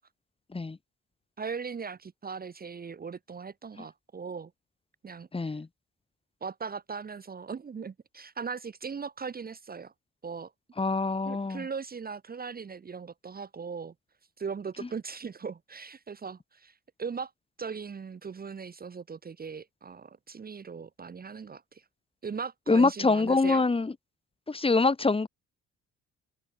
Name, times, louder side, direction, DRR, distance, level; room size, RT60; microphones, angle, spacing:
voice 1, 1.4-4.5 5.0-5.5 6.4-9.9 10.2-10.5 11.2-13.9 14.4-16.7 17.0-17.3 17.6-21.8 22.2-23.6, right 5 dB, 30° right, 0.9 m, -39 dB
voice 2, 5.3-5.7 10.8-11.6 22.7-23.9 24.5-25.3, left 3 dB, 20° left, 1.3 m, -25 dB
open air
cardioid pair, 90°, 30 cm